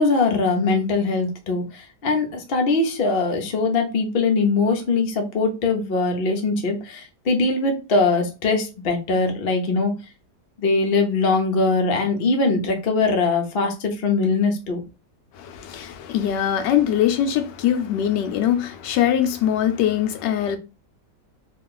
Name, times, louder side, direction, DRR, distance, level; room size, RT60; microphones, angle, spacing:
voice 1, 0.0-10.0 10.6-14.8, left 3 dB, 55° left, 0.6 m, -21 dB
voice 2, 15.3-20.6, left 10 dB, 80° left, 1.2 m, -22 dB
3.1 x 2.4 x 3.7 m
omnidirectional pair, 1.9 m